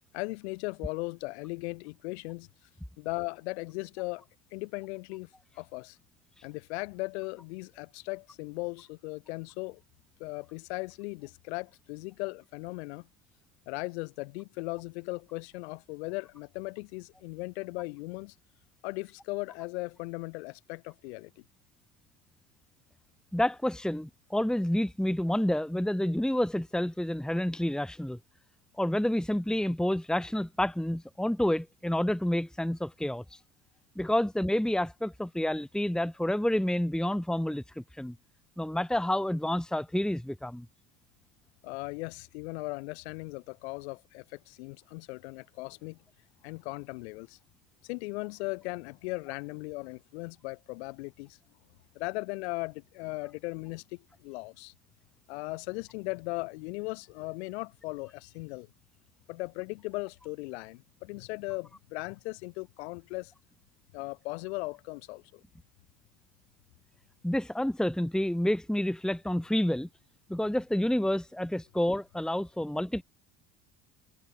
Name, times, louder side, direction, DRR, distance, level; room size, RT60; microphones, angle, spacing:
voice 1, 0.1-2.5 3.0-5.3 5.5-6.0 6.4-9.8 10.2-13.1 13.7-18.3 18.8-21.4 41.6-46.0 46.4-47.4 47.8-51.4 51.9-54.7 55.3-58.7 59.3-63.3 63.9-65.4, left 25 dB, 85° left, 6.3 m, -38 dB
voice 2, 23.3-28.2 28.8-33.2 33.9-38.1 38.6-40.6 67.2-69.9 70.3-73.0, left 1 dB, ahead, 1.7 m, -29 dB
hypercardioid pair, 75°, 32 cm